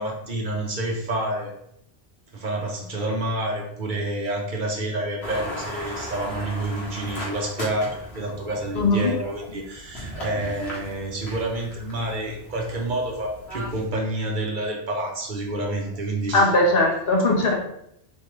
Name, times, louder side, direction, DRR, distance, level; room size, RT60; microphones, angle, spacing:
voice 1, 0.0-1.5 2.3-16.5, right 1 dB, 50° right, 0 dB, 1.0 m, -28 dB
sound 1, 5.2-13.9, equal, 85° left, 1.6 m, -37 dB
voice 2, 8.7-9.1 16.3-17.5, left 2 dB, 65° left, 0 dB, 1.2 m, -19 dB
4.3 x 3.7 x 3.1 m, 0.73 s
omnidirectional pair, 1.1 m